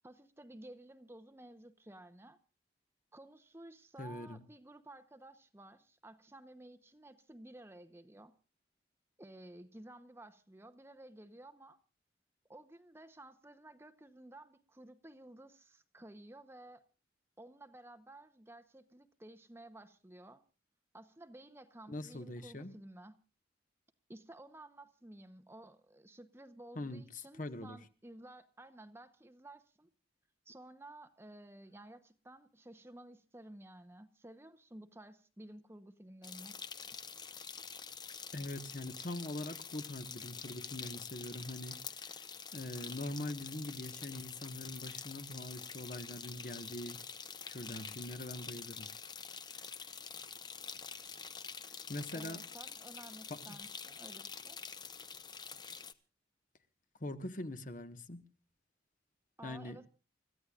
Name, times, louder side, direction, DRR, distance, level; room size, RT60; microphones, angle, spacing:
voice 1, 0.0-2.4 3.1-8.3 9.2-11.8 12.5-16.8 17.4-20.4 20.9-23.2 24.1-29.9 30.4-36.6 52.1-54.6 59.4-59.9, right 1 dB, 15° right, 0.8 m, -54 dB
voice 2, 4.0-4.4 21.9-22.7 26.7-27.0 27.4-27.8 38.3-42.1 42.5-47.0 47.5-48.9 49.5-49.6 51.9-52.4 53.3-53.6 57.0-58.2 59.4-59.8, left 1 dB, 45° left, 1.3 m, -43 dB
sound 1, 36.2-55.9, left 6 dB, 25° left, 0.8 m, -47 dB
30.0 x 15.0 x 2.4 m
head